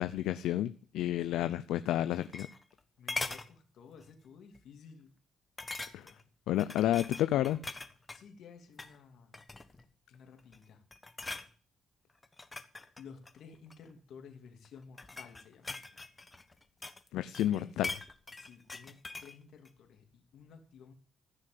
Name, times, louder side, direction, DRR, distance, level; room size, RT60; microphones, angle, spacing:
voice 1, 0.0-2.5 5.9-6.1 6.5-7.6 17.1-17.9, left 13 dB, 85° left, 0.5 m, -30 dB
sound 1, 1.9-2.8 3.1-3.5 4.0-4.2 4.5-4.6 5.6-6.2 6.6-8.2 8.7-9.0 9.3-9.9 10.4-10.6 10.9-11.5 12.2-13.8 14.6-17.1 17.3-19.4 19.7-19.8, left 3 dB, 20° left, 1.2 m, -42 dB
voice 2, 3.0-5.1 8.1-9.3 10.1-10.8 13.0-16.1 17.4-17.8 18.3-20.9, left 6 dB, 70° left, 2.8 m, -54 dB
15.0 x 6.5 x 7.7 m
cardioid pair, 90°, 0 cm